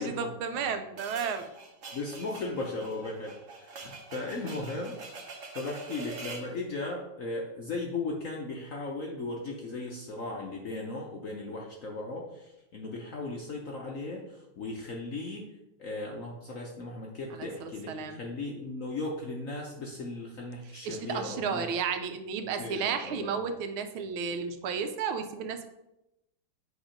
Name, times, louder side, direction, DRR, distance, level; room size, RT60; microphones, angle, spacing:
voice 1, 0.0-1.5 17.3-18.2 20.8-25.7, right 6 dB, 80° right, 8 dB, 1.5 m, -33 dB
sound 1, 1.0-6.5, right 3 dB, 45° right, 1.2 m, -45 dB
voice 2, 1.9-4.9 5.5-15.4 15.8-21.7 22.4-23.4, left 2 dB, 60° left, 0 dB, 0.9 m, -37 dB
8.2 x 3.5 x 5.0 m, 0.89 s
omnidirectional pair, 2.3 m